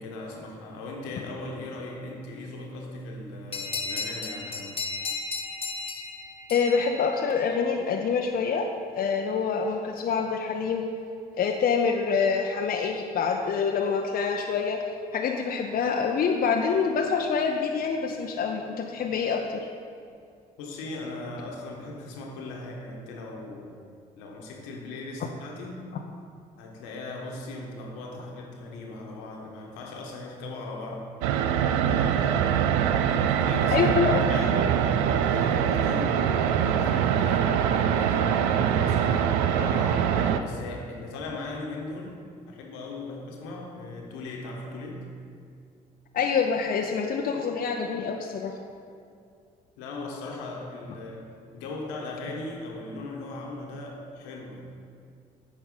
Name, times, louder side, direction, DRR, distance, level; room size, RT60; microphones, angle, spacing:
voice 1, 0.0-4.8 20.6-23.7 24.1-25.9 26.6-31.1 31.8-32.3 33.0-36.2 36.6-45.0 49.8-51.3 51.5-54.7, left 2 dB, 75° left, 0 dB, 1.3 m, -38 dB
sound 1, 3.5-7.8, left 4 dB, 30° left, 1.2 m, -35 dB
voice 2, 6.5-8.7 8.9-10.9 11.4-14.8 15.1-19.7 33.7-34.3 46.1-48.5, left 6 dB, 50° left, 2 dB, 0.7 m, -26 dB
sound 2, 31.2-40.4, right 8 dB, 75° right, 0.4 m, -23 dB
8.7 x 5.2 x 5.5 m, 2.3 s
hypercardioid pair, 50°, 20 cm